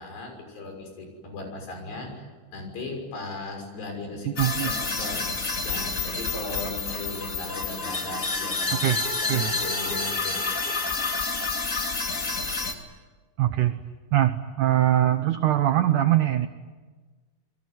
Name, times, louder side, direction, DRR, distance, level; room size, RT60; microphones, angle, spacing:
voice 1, 0.0-2.3 2.5-8.9 9.2-10.4, left 2 dB, 70° left, 4 dB, 8.4 m, -37 dB
sound 1, 4.4-12.7, left 4 dB, 25° left, 1.9 m, -29 dB
voice 2, 4.4-4.7 8.8-9.5 13.4-13.8 14.1-16.5, right 13 dB, 80° right, 9 dB, 1.8 m, -22 dB
28.5 x 22.0 x 9.6 m, 1.4 s
omnidirectional pair, 4.9 m